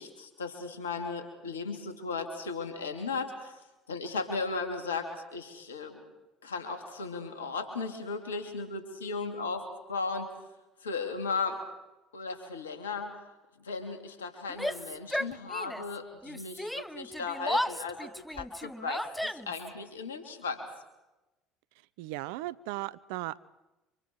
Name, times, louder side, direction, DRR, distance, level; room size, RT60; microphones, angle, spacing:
voice 1, 0.0-3.6 3.9-6.0 6.4-9.6 9.9-10.3 10.8-11.6 12.1-13.1 13.6-20.6, left 4 dB, 90° left, 5 dB, 3.0 m, -36 dB
Yell, 14.5-15.9 16.2-19.7, equal, 5° left, 0.8 m, -34 dB
voice 2, 22.0-23.4, right 17 dB, 70° right, 20 dB, 0.7 m, -36 dB
29.5 x 26.0 x 4.7 m, 1.0 s
hypercardioid pair, 65°, 0 cm